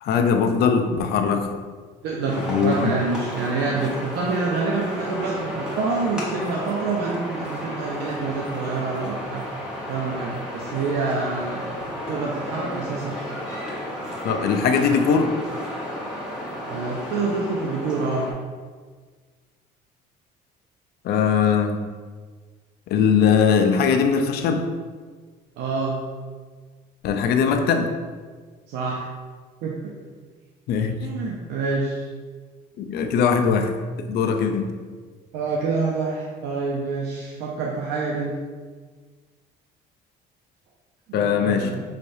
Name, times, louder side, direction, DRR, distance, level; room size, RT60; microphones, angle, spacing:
voice 1, 0.0-1.5 2.5-2.9 14.2-15.3 21.0-21.8 22.9-24.6 27.0-27.9 30.7-31.0 32.8-33.7 34.0-34.7 41.1-41.7, left 6 dB, 70° left, 6 dB, 0.5 m, -20 dB
voice 2, 2.0-9.4 9.9-11.8 12.1-13.1 16.7-18.3 25.6-26.0 28.7-29.1 29.6-29.8 31.0-32.1 35.3-38.3 41.1-41.8, right 4 dB, 85° right, -2 dB, 0.5 m, -27 dB
sound 1, 2.3-18.3, equal, 5° right, 1.2 m, -33 dB
5.6 x 3.2 x 2.6 m, 1.5 s
cardioid pair, 110°, 17 cm